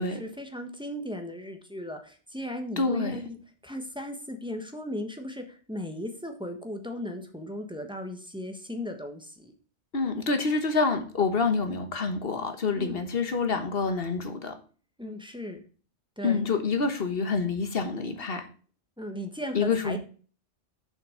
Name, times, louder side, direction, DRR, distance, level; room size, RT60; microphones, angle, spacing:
voice 1, 0.0-3.4 3.6-9.5 12.7-13.1 15.0-15.6 16.2-16.4 19.0-20.0, left 1 dB, 5° right, 4 dB, 1.2 m, -37 dB
voice 2, 2.8-3.2 9.9-14.6 16.2-18.5 19.5-20.0, left 4 dB, 55° left, 7 dB, 1.4 m, -27 dB
6.9 x 5.8 x 5.0 m, 0.39 s
omnidirectional pair, 1.2 m